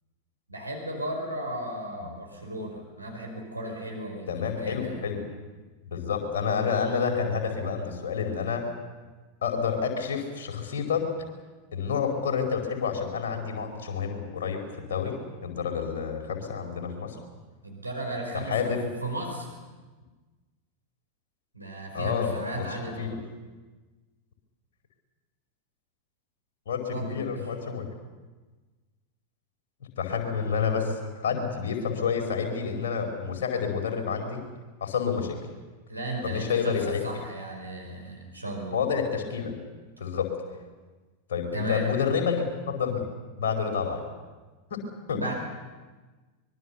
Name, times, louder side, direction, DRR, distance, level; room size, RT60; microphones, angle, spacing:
voice 1, 0.5-4.3 4.6-5.1 17.6-18.7 19.0-19.6 21.5-23.1 26.9-27.3 35.9-38.8 41.5-41.9 45.1-45.3, right 1 dB, 85° right, 1 dB, 4.9 m, -35 dB
voice 2, 4.3-5.2 5.9-8.7 9.4-11.1 11.7-17.2 18.5-18.9 21.9-22.6 23.0-23.1 26.7-27.8 30.0-34.4 34.8-35.4 36.2-37.0 38.7-39.6 40.0-40.3 41.3-43.0 43.4-44.0 44.7-44.8 45.1-45.2, left 6 dB, 60° left, 3 dB, 4.7 m, -29 dB
24.0 x 22.5 x 7.0 m, 1.3 s
figure-of-eight pair, 90°, 0 cm